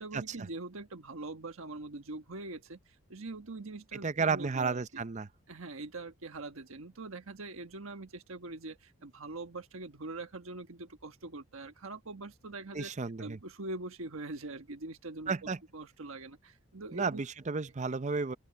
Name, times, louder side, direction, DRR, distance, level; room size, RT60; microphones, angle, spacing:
voice 1, 0.0-5.0 5.5-12.9 13.2-17.2, right 2 dB, 85° right, 1.3 m, -43 dB
voice 2, 4.0-5.3 12.7-13.4 15.3-15.6 16.9-18.4, right 4 dB, 35° right, 0.6 m, -32 dB
open air
head